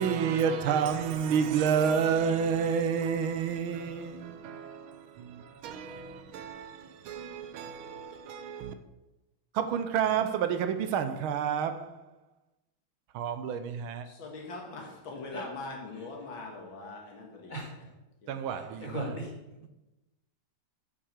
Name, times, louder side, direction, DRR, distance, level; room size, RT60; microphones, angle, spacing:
voice 1, 0.0-8.7 9.5-12.0 13.1-14.1 18.3-19.0, right 7 dB, 75° right, 1.5 m, -30 dB
voice 2, 14.0-17.7 18.2-18.5, left 3 dB, 65° left, 2.2 m, -42 dB
voice 3, 17.5-17.9 18.5-19.3, right 1 dB, 20° left, 2.2 m, -38 dB
7.2 x 5.7 x 6.5 m
omnidirectional pair, 2.4 m